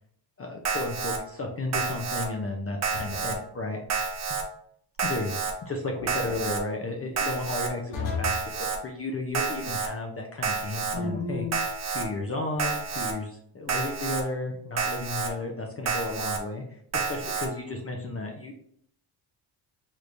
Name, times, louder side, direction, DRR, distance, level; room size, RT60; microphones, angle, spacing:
voice 1, 0.4-3.8 5.0-11.5 11.9-16.6 16.9-18.6, left 2 dB, 30° left, 1 dB, 0.5 m, -33 dB
Alarm, 0.6-1.2 1.7-2.3 2.8-3.4 3.9-4.4 5.0-5.5 6.1-6.6 7.2-7.7 8.2-8.8 9.3-9.9 10.4-11.0 11.5-12.1 12.6-13.1 13.7-14.2 14.8-15.3 15.9-16.4 16.9-17.5, right 5 dB, 35° right, 0.7 m, -29 dB
sound 1, 2.9-3.4 5.9-6.4 7.9-8.5 10.9-11.6, left 4 dB, 80° left, 1.0 m, -33 dB
3.4 x 2.9 x 2.5 m, 0.67 s
supercardioid pair, 65°, 50 cm